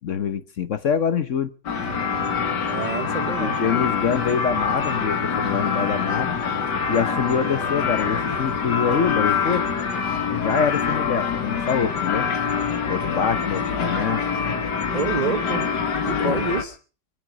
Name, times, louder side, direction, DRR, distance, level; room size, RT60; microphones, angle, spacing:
voice 1, 0.0-1.5 3.4-6.4 6.9-9.7 10.3-12.3 12.9-14.2 16.2-16.5, left 7 dB, 50° left, 1.1 m, -25 dB
sound 1, 1.7-16.6, left 6 dB, 75° left, 2.4 m, -25 dB
voice 2, 2.6-3.6 14.9-15.7 16.0-16.8, right 4 dB, 45° right, 0.5 m, -28 dB
25.5 x 8.9 x 6.2 m
omnidirectional pair, 1.9 m